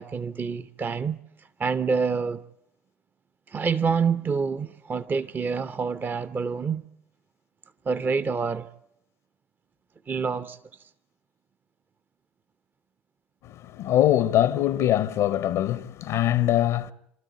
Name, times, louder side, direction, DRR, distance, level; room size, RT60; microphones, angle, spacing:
voice 1, 0.0-2.4 3.5-6.8 7.8-8.7 10.1-10.9, right 5 dB, 30° right, 0.8 m, -27 dB
voice 2, 13.4-16.9, left 12 dB, 60° left, 0.8 m, -23 dB
29.0 x 13.0 x 9.3 m
hypercardioid pair, 60°, 6 cm